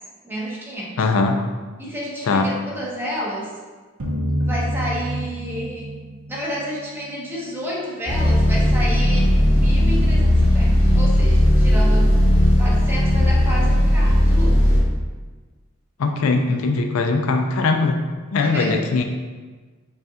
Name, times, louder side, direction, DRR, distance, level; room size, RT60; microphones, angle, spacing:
voice 1, 0.2-0.9 1.8-3.5 4.4-6.0 6.3-12.1 12.6-14.9 18.4-18.8, equal, 10° right, -5 dB, 0.8 m, -30 dB
voice 2, 1.0-1.4 2.3-2.5 16.0-18.0 18.3-19.0, left 3 dB, 85° left, 5 dB, 0.4 m, -20 dB
sound 1, 4.0-7.1, equal, 75° right, 0.7 m, -27 dB
sound 2, 8.1-14.8, left 1 dB, 30° left, 0.8 m, -16 dB
5.3 x 2.4 x 2.8 m, 1.3 s
head